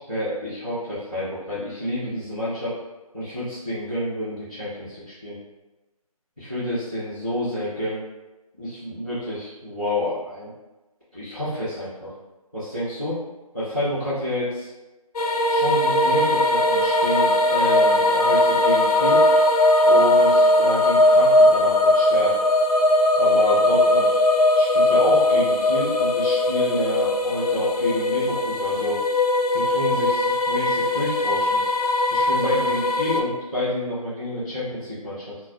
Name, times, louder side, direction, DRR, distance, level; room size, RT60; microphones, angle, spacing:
voice 1, 0.1-2.8 3.1-5.4 6.4-8.0 8.6-10.5 11.1-12.1 12.5-13.2 13.5-14.7 15.5-19.2 19.8-22.4 23.2-24.1 24.5-29.0 29.5-31.6 32.1-35.4, equal, ahead, -20 dB, 0.4 m, -29 dB
sound 1, 15.2-33.2, left 1 dB, 85° left, 0.4 m, -19 dB
2.2 x 2.1 x 2.8 m, 1.1 s
figure-of-eight pair, 160°, 19 cm